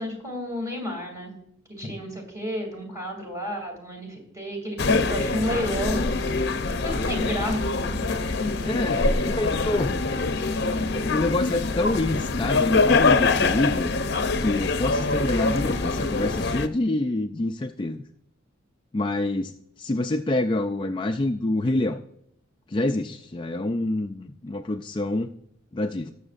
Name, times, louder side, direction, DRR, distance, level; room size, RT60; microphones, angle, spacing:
voice 1, 0.0-1.3 1.8-6.1 6.8-7.7 7.9-8.0, equal, 15° right, 1 dB, 2.7 m, -31 dB
sound 1, 4.8-16.7, left 3 dB, 55° left, 0.7 m, -24 dB
voice 2, 8.6-10.0 10.9-14.0 14.4-18.0 18.9-22.0 22.7-25.3 25.7-26.1, left 2 dB, 25° left, 5 dB, 0.3 m, -27 dB
18.5 x 7.1 x 2.5 m, 0.71 s
head